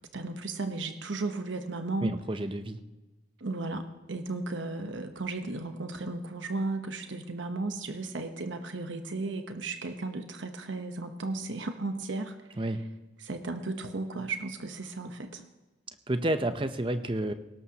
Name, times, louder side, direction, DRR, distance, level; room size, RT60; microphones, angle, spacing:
voice 1, 0.1-2.2 3.4-12.3 13.2-15.4, right 3 dB, 75° right, 7 dB, 1.0 m, -35 dB
voice 2, 2.0-2.8 12.6-12.8 16.1-17.3, right 1 dB, 25° right, 9 dB, 0.7 m, -30 dB
18.5 x 17.0 x 2.9 m, 1.1 s
head